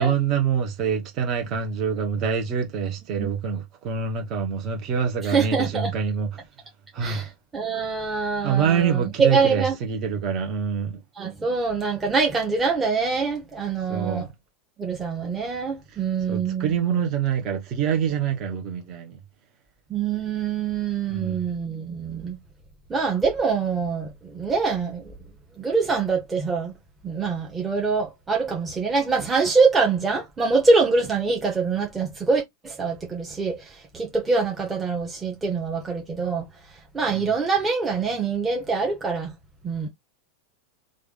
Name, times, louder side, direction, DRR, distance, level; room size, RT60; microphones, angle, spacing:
voice 1, 0.0-6.4 6.9-7.3 8.4-11.0 13.9-14.3 16.3-19.2 21.1-21.4 37.1-37.3, right 7 dB, 45° right, 1.1 m, -25 dB
voice 2, 5.2-5.9 7.0-7.3 7.5-9.7 11.2-14.3 14.8-16.7 19.9-22.4 22.9-25.0 25.6-26.7 27.0-33.7 33.9-36.4 36.9-39.3 39.6-39.9, right 4 dB, 20° right, 1.2 m, -24 dB
3.3 x 2.5 x 3.9 m
hypercardioid pair, 90°, 0 cm